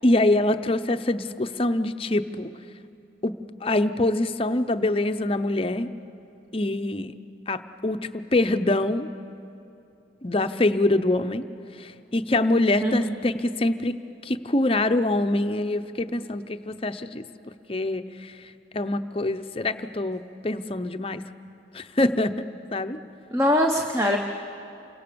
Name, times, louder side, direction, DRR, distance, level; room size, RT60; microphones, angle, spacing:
voice 1, 0.0-2.5 3.2-5.9 6.5-7.1 7.5-9.1 10.2-11.5 11.7-14.0 14.2-17.2 17.7-21.2 21.7-22.4 22.7-23.0, left 2 dB, 30° left, 9 dB, 0.7 m, -25 dB
voice 2, 12.8-13.1 23.3-24.2, equal, 15° right, 2 dB, 1.0 m, -22 dB
28.5 x 24.5 x 6.9 m, 2.8 s
head